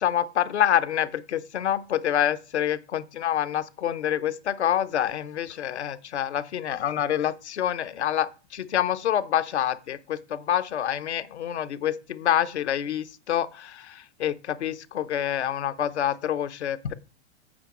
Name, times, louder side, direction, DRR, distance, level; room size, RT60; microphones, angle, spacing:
voice 1, 0.0-16.9, left 10 dB, 80° left, 0.7 m, -27 dB
8.9 x 3.5 x 5.8 m
figure-of-eight pair, 100°, 34 cm